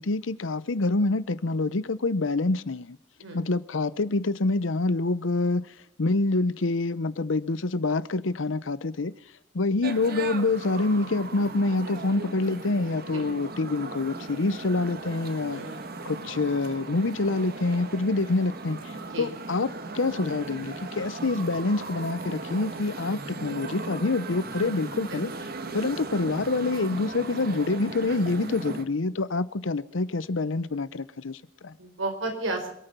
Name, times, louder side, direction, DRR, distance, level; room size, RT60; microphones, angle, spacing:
voice 1, 0.0-3.0 3.3-5.6 6.0-9.1 9.5-15.6 16.0-25.3 25.7-31.7, left 3 dB, 80° left, 0.8 m, -26 dB
sound 1, 9.8-28.8, right 3 dB, 50° right, 1.4 m, -37 dB
voice 2, 15.5-15.8 19.1-19.3 31.8-32.7, right 2 dB, 90° right, 4.4 m, -32 dB
27.0 x 9.1 x 5.6 m
head